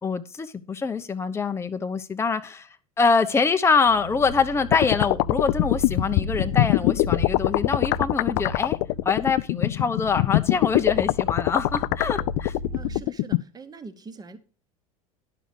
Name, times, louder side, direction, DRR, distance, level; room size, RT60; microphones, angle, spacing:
voice 1, 0.0-2.7 3.0-8.8 9.0-12.5, left 5 dB, 15° left, 0.7 m, -24 dB
sound 1, 3.8-13.0, left 1 dB, 80° right, 2.0 m, -35 dB
sound 2, 4.7-13.4, left 21 dB, 50° left, 0.4 m, -22 dB
voice 2, 12.7-14.4, right 4 dB, 20° right, 1.2 m, -42 dB
11.0 x 6.3 x 5.3 m
hypercardioid pair, 80°, 18 cm